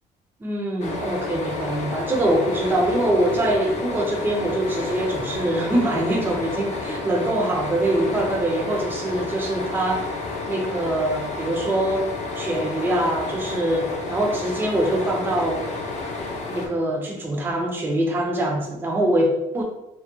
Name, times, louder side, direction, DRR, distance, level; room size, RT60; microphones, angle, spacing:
voice 1, 0.4-10.1 10.5-15.7 16.5-19.6, right 1 dB, 10° right, 0 dB, 0.4 m, -24 dB
sound 1, 0.8-16.7, left 3 dB, 40° left, 0.5 m, -31 dB
2.3 x 2.0 x 2.9 m, 0.96 s
cardioid pair, 110°, 17 cm